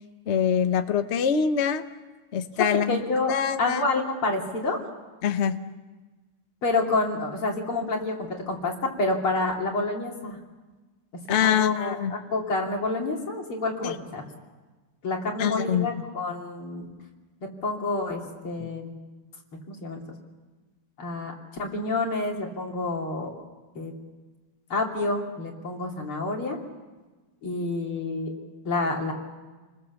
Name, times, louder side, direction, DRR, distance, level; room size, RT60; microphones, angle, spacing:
voice 1, 0.3-1.8 2.3-3.0 3.3-3.8 5.2-5.6 11.3-12.1 13.8-13.9 15.4-16.1 18.6-18.7, left 8 dB, 45° left, 9 dB, 0.9 m, -24 dB
voice 2, 2.9-4.8 6.6-10.4 11.4-12.0 12.3-14.2 15.0-16.9 17.6-18.9 19.7-20.0 21.0-23.3 23.8-23.9 24.7-26.6 27.4-28.3 28.7-29.1, left 2 dB, 85° left, 0 dB, 3.9 m, -28 dB
29.5 x 21.0 x 7.1 m, 1.3 s
omnidirectional pair, 2.3 m